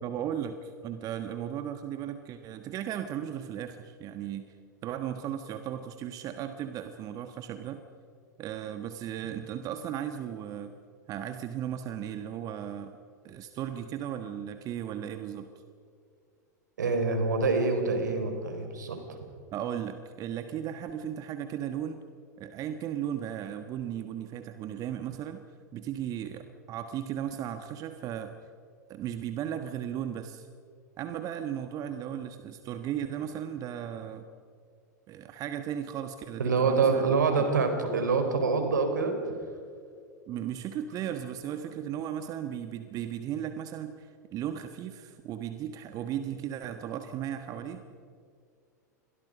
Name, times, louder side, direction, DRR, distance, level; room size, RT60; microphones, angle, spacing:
voice 1, 0.0-4.5 4.8-7.8 8.4-10.7 11.1-12.9 13.2-15.5 19.5-22.0 22.4-25.4 25.7-28.3 28.9-30.5 31.0-34.3 35.1-37.0 40.3-47.8, right 10 dB, 40° right, 8 dB, 1.4 m, -36 dB
voice 2, 16.8-19.0 36.4-39.1, right 4 dB, 75° right, 6 dB, 4.4 m, -26 dB
30.0 x 23.0 x 5.3 m, 2.2 s
figure-of-eight pair, 90°, 10 cm